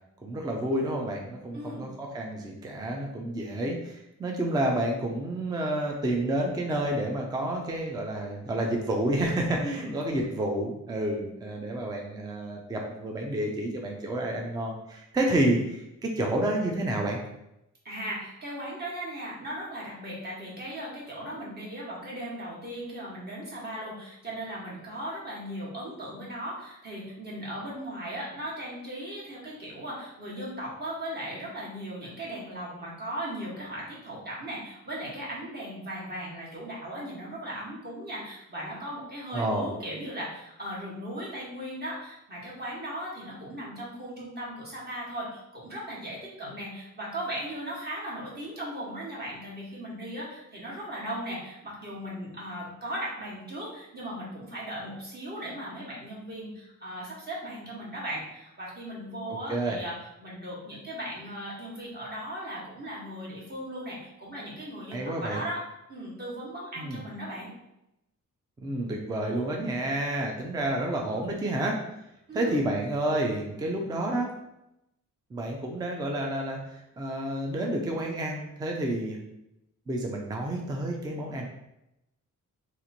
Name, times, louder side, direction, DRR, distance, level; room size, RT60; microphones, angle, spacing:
voice 1, 0.2-17.2 39.3-39.7 59.3-59.8 64.9-65.4 66.8-67.0 68.6-71.8 72.3-74.3 75.3-79.2 79.9-81.5, right 1 dB, 15° right, 1 dB, 0.4 m, -29 dB
voice 2, 1.5-1.9 9.6-9.9 17.8-65.6 65.9-67.5 72.3-72.6, right 1 dB, 30° right, -5 dB, 1.2 m, -37 dB
2.9 x 2.5 x 3.9 m, 0.86 s
wide cardioid pair, 170°, 32 cm